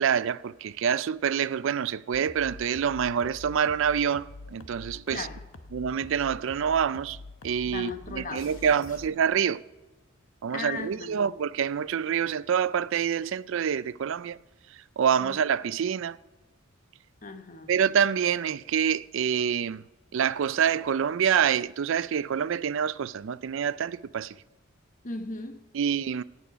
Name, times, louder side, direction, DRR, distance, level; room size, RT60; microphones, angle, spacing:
voice 1, 0.0-5.3 5.7-7.2 7.4-9.6 10.4-14.4 15.0-16.2 17.7-19.8 20.1-24.3 25.7-26.2, right 7 dB, 65° right, 0.4 m, -26 dB
sound 1, 2.1-9.1, left 2 dB, 70° left, 1.1 m, -46 dB
voice 2, 5.1-5.4 7.6-8.7 10.4-11.2 15.2-15.4 17.2-17.7 25.0-25.6, left 3 dB, 40° left, 1.1 m, -37 dB
17.0 x 9.0 x 5.1 m
head